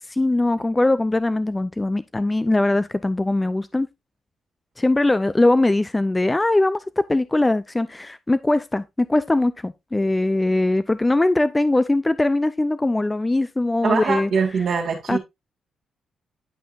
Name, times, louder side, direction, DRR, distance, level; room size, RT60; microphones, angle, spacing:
voice 1, 0.1-3.9 4.8-14.3 15.1-15.2, left 2 dB, 15° left, 0.5 m, -21 dB
voice 2, 13.8-15.2, right 5 dB, 65° right, 2.1 m, -23 dB
11.0 x 5.6 x 2.5 m
cardioid pair, 80°, 0 cm